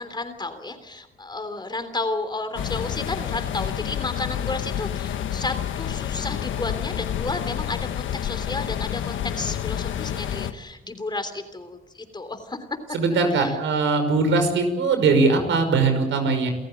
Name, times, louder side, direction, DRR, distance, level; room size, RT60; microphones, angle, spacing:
voice 1, 0.0-12.6 13.3-13.6, left 2 dB, 20° left, 9 dB, 3.3 m, -32 dB
sound 1, 2.6-10.5, left 10 dB, 75° left, 1.4 m, -29 dB
voice 2, 12.9-16.5, right 3 dB, 75° right, 7 dB, 5.7 m, -20 dB
28.5 x 14.5 x 8.8 m, 1.0 s
cardioid pair, 90°, 20 cm